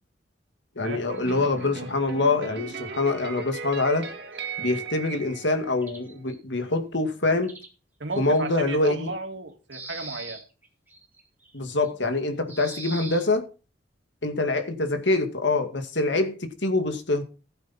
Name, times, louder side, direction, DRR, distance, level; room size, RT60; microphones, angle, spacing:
voice 1, 0.8-4.1 4.6-7.6 8.2-9.1 11.5-13.4 14.2-17.2, left 2 dB, 75° left, 2.2 m, -25 dB
Quickly Electroguitar Experimental Sketch, 1.1-6.2, right 5 dB, 60° right, 2.2 m, -38 dB
sound 1, 1.2-1.7 2.7-2.8 3.1-3.3 4.0-4.6 5.8-6.4 7.4-7.7 8.1-8.5 9.1-9.2 9.7-12.1 12.5-13.2, right 3 dB, 10° right, 2.6 m, -42 dB
voice 2, 8.0-10.5, right 3 dB, 80° right, 2.4 m, -34 dB
15.5 x 8.1 x 4.4 m
head